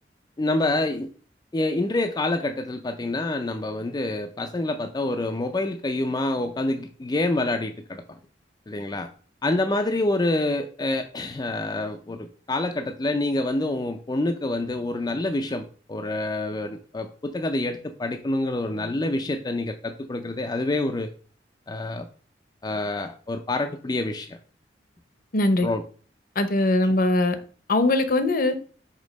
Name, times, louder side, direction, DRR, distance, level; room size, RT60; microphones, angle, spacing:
voice 1, 0.4-1.1 1.5-8.0 8.7-9.1 9.4-21.1 21.7-22.1 22.6-24.4 25.6-25.8, left 2 dB, 20° left, 5 dB, 0.4 m, -27 dB
voice 2, 25.3-25.7 26.4-27.4 27.7-28.5, left 2 dB, 55° left, 10 dB, 0.7 m, -21 dB
5.2 x 3.7 x 5.2 m, 0.41 s
head